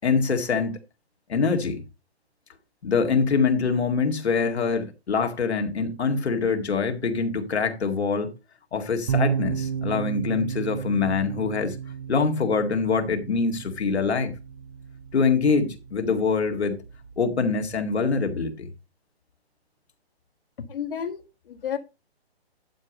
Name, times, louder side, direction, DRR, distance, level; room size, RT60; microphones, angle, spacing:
voice 1, 0.0-0.8 1.3-1.8 2.8-8.3 8.7-11.8 12.1-14.3 15.1-16.8 17.2-18.7, left 5 dB, 80° left, 2.2 m, -24 dB
sound 1, 9.1-18.5, right 8 dB, 40° right, 1.1 m, -33 dB
voice 2, 20.7-21.8, left 8 dB, 55° left, 1.7 m, -32 dB
11.5 x 4.9 x 5.1 m
hypercardioid pair, 155°, 32 cm